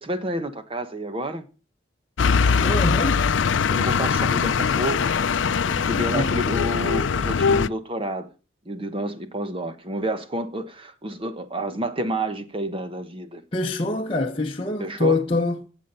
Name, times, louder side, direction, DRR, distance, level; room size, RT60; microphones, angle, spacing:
voice 1, 0.0-1.4 2.2-2.3 3.7-5.1 5.7-8.3 8.7-13.4 14.8-15.2, right 1 dB, 30° right, 1.0 m, -30 dB
sound 1, 2.2-7.7, left 5 dB, 70° left, 0.5 m, -21 dB
voice 2, 2.6-3.2 6.1-6.4 13.5-15.6, left 2 dB, 30° left, 0.9 m, -24 dB
17.0 x 7.2 x 5.5 m
head